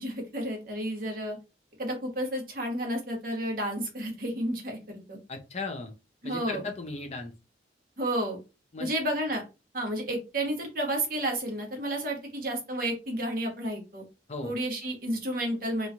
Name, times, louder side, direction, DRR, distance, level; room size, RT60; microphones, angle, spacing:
voice 1, 0.0-1.4 1.8-5.2 6.2-6.6 8.0-8.4 8.8-9.4 9.7-14.0 14.4-15.9, right 1 dB, 50° right, 1 dB, 1.0 m, -31 dB
voice 2, 5.3-5.9 6.2-7.3 8.7-8.9 14.3-14.5, left 3 dB, 35° left, 5 dB, 0.6 m, -36 dB
3.0 x 2.3 x 2.6 m, 0.28 s
head